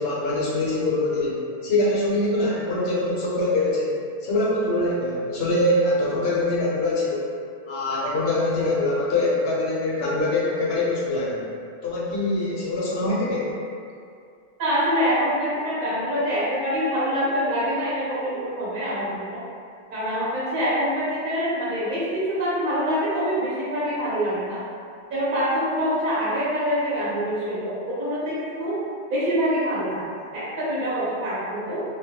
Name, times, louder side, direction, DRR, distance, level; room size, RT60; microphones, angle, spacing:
voice 1, 0.0-7.3 7.7-11.5 11.8-13.6, left 2 dB, 70° left, -7 dB, 0.8 m, -24 dB
voice 2, 14.6-19.4 19.9-24.6 25.1-28.8 29.1-30.1 30.3-31.8, equal, 55° right, -9 dB, 0.8 m, -25 dB
2.2 x 2.1 x 2.7 m, 2.3 s
omnidirectional pair, 1.1 m